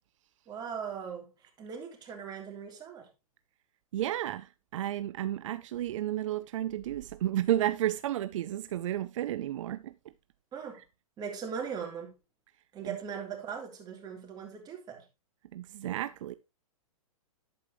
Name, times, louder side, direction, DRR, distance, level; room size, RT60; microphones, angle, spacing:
voice 1, 0.5-1.3 1.6-3.1 10.5-10.8 11.2-12.1 12.7-15.0, right 7 dB, 20° right, 3.4 m, -39 dB
voice 2, 3.9-9.9 12.8-13.0 15.5-16.3, right 12 dB, 60° right, 0.6 m, -32 dB
11.0 x 8.7 x 3.1 m
hypercardioid pair, 125°, 19 cm